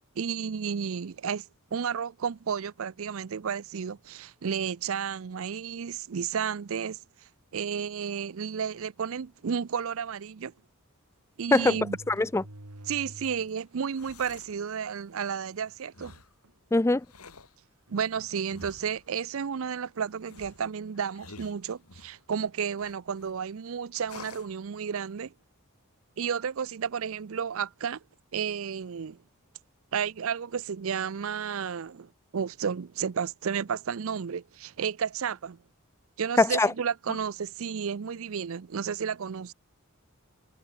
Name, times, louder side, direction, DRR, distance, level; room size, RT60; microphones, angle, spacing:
voice 1, 0.2-1.4 1.7-7.0 7.5-10.5 11.4-12.0 12.9-16.1 17.9-25.3 26.2-28.0 28.3-29.2 29.9-35.6 36.2-39.5, right 7 dB, 65° right, 0.5 m, -32 dB
sound 1, 7.7-8.0 8.8-8.9 9.2-9.3 10.6-10.7 11.4-13.6 14.1-14.2 15.0-15.1 15.5-15.8 16.4-16.6 17.9-18.7 19.7-19.9, right 1 dB, 85° right, 3.7 m, -49 dB
voice 2, 12.1-12.4 16.7-17.0 36.4-36.7, left 2 dB, 10° left, 0.3 m, -22 dB
sound 2, 13.7-14.6 15.9-16.4 17.0-17.6 18.5-19.1 20.2-22.2 22.8-23.3 24.0-24.6, left 3 dB, 80° left, 3.8 m, -49 dB
head